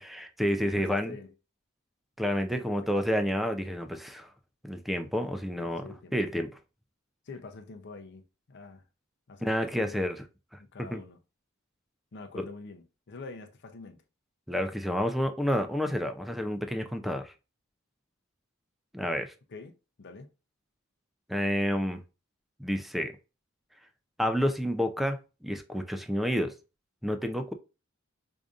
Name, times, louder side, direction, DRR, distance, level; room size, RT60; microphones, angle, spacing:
voice 1, 0.0-1.1 2.2-4.3 4.6-6.5 9.4-10.2 10.9-11.0 12.3-12.4 14.5-17.3 18.9-19.3 21.3-22.0 22.6-23.2 24.2-26.5 27.0-27.5, equal, ahead, 0.4 m, -29 dB
voice 2, 0.6-1.3 2.5-2.8 5.6-6.1 7.3-8.8 9.3-10.1 10.6-11.2 12.1-14.0 19.5-20.3, left 3 dB, 55° left, 0.6 m, -45 dB
4.9 x 2.6 x 2.4 m
head